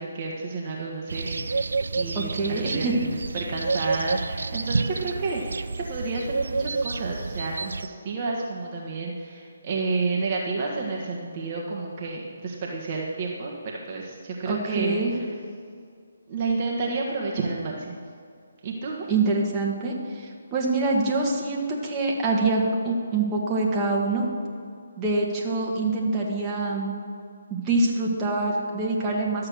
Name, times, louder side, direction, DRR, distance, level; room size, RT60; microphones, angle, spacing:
voice 1, 0.0-15.3 16.3-18.0 18.6-19.1, right 3 dB, 35° right, -2 dB, 1.5 m, -30 dB
sound 1, 1.1-7.9, right 4 dB, 75° right, 0.4 m, -29 dB
voice 2, 2.2-2.9 14.5-15.1 19.1-24.3 25.0-26.9 27.5-29.5, right 3 dB, 20° right, -3 dB, 1.8 m, -25 dB
12.5 x 7.6 x 6.4 m, 2.2 s
figure-of-eight pair, 150°, 0 cm